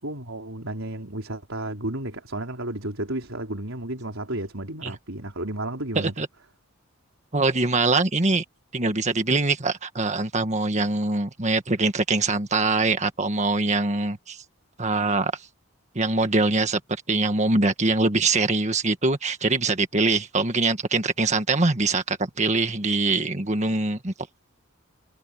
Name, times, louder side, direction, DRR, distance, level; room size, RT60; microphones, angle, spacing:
voice 1, 0.0-6.1, right 1 dB, 70° right, 4.5 m, -32 dB
voice 2, 5.9-6.3 7.3-8.4 8.7-14.4 14.8-15.3 15.9-16.8 17.1-24.1, right 3 dB, 35° right, 1.7 m, -23 dB
head